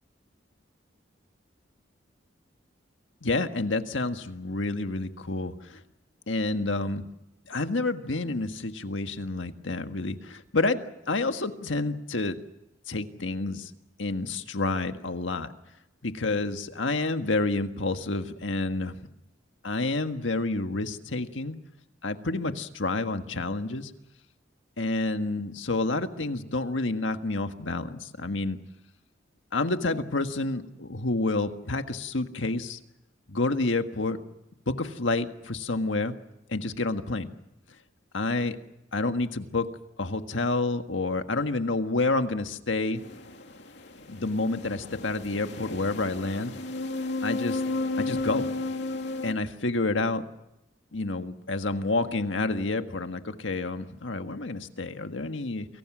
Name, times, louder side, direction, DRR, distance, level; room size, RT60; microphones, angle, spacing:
voice 1, 3.2-5.8 6.3-7.0 7.5-12.4 12.9-13.7 14.0-15.5 16.0-19.0 19.6-21.6 22.0-23.9 24.8-28.6 29.5-32.8 33.3-34.2 34.7-36.1 36.5-37.3 38.1-38.6 38.9-39.7 40.0-43.0 44.1-46.6 47.2-47.6 48.0-48.5 49.2-50.2 50.9-55.7, left 2 dB, 90° left, 7 dB, 1.6 m, -29 dB
sound 1, 42.9-49.3, left 2 dB, 65° left, 2.7 m, -33 dB
29.0 x 23.5 x 6.2 m, 0.90 s
head